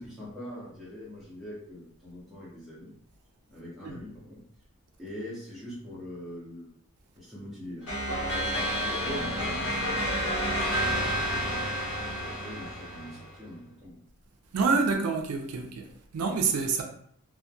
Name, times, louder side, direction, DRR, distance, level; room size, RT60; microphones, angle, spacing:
voice 1, 0.0-2.9 3.5-4.4 5.0-6.7 7.1-13.9, left 1 dB, ahead, 0.9 m, -42 dB
sound 1, 7.9-13.3, equal, 60° left, 0.9 m, -30 dB
voice 2, 14.5-16.8, right 4 dB, 90° right, 0.4 m, -27 dB
2.2 x 2.1 x 2.6 m
head